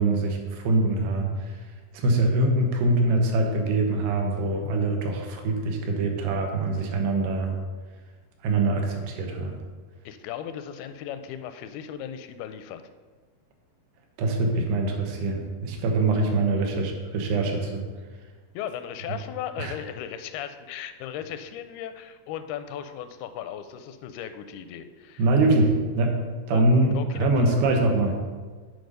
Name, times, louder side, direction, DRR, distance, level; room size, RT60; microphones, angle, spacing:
voice 1, 0.0-1.6 1.9-7.6 8.4-9.6 14.2-17.8 19.6-19.7 25.2-28.2, right 2 dB, 90° right, 2 dB, 3.0 m, -24 dB
voice 2, 10.1-12.8 18.5-25.2 26.5-26.7 26.9-27.5, left 9 dB, 85° left, 10 dB, 2.5 m, -36 dB
7.9 x 4.9 x 5.3 m, 1.4 s
omnidirectional pair, 4.4 m